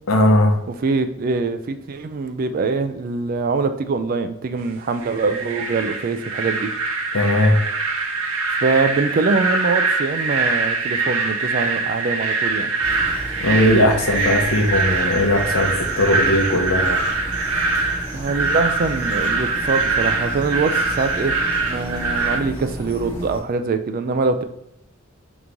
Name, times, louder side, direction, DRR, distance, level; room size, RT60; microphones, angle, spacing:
voice 1, 0.1-0.6 7.1-7.6 13.4-17.0, left 1 dB, 70° left, 3 dB, 0.8 m, -18 dB
voice 2, 0.7-6.7 8.6-12.7 18.1-21.3 21.6-24.4, right 4 dB, 45° right, 9 dB, 0.3 m, -23 dB
sound 1, 5.0-22.4, right 3 dB, 90° right, 0.8 m, -23 dB
sound 2, 12.8-23.4, right 1 dB, 10° left, 0.9 m, -33 dB
3.5 x 3.0 x 3.8 m, 0.82 s
head